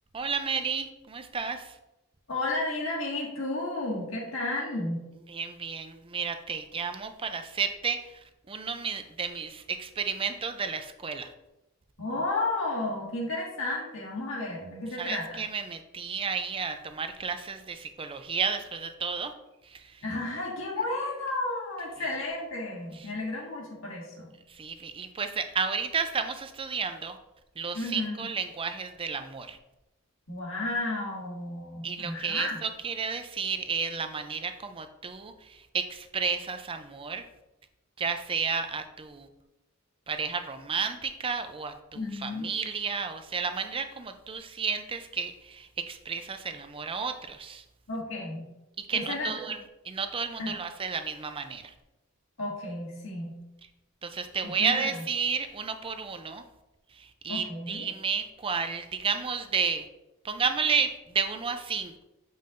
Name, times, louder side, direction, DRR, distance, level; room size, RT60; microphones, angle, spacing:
voice 1, 0.1-1.7 5.3-8.1 8.5-11.3 15.0-19.3 19.7-19.8 24.5-27.2 27.6-29.6 31.8-37.2 38.0-39.3 40.1-47.6 48.9-49.6 49.9-51.7 54.0-56.4 57.0-59.8 60.2-62.0, right 5 dB, 25° right, 8 dB, 0.4 m, -32 dB
voice 2, 2.3-5.1 12.0-15.4 20.0-24.3 27.7-28.3 30.3-32.6 41.9-42.5 47.9-48.4 48.9-49.3 50.4-50.6 52.4-53.4 54.4-55.0 57.3-57.9, left 2 dB, 65° left, -4 dB, 1.8 m, -32 dB
7.4 x 5.5 x 2.5 m, 0.96 s
head